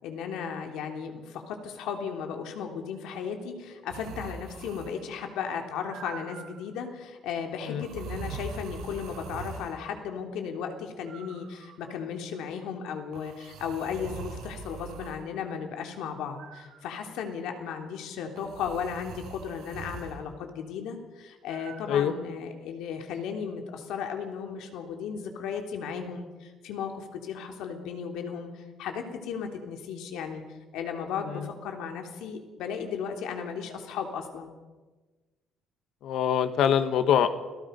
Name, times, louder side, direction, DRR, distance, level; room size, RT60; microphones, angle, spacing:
voice 1, 0.0-30.4 30.7-34.5, left 7 dB, 80° left, 4 dB, 3.4 m, -35 dB
sound 1, 3.9-5.1 5.8-6.7 7.8-9.8 11.0-12.0 13.1-15.2 16.4-17.1 18.4-20.2 21.5-22.0, right 4 dB, 75° right, 4.7 m, -42 dB
voice 2, 36.0-37.3, left 9 dB, 60° left, 10 dB, 1.5 m, -24 dB
29.0 x 18.5 x 5.4 m, 1.3 s
cardioid pair, 160°, 0 cm